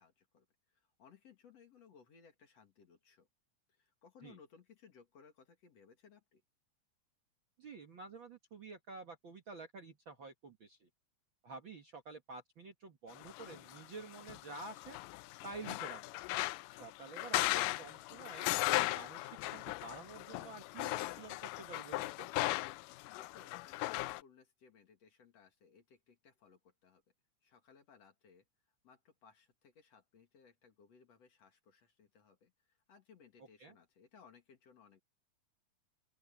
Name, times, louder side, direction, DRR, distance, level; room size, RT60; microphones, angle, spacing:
voice 1, 0.0-3.3 3.7-6.4 23.0-27.0 27.4-28.4 28.8-35.0, left 6 dB, 50° left, 3.0 m, -63 dB
voice 2, 7.6-10.9 11.4-15.0 15.4-16.2 16.7-18.5 18.9-22.3 33.6-33.7, right 3 dB, 45° right, 1.8 m, -50 dB
sound 1, 13.2-24.2, left 20 dB, 85° left, 2.1 m, -37 dB
open air
omnidirectional pair, 3.9 m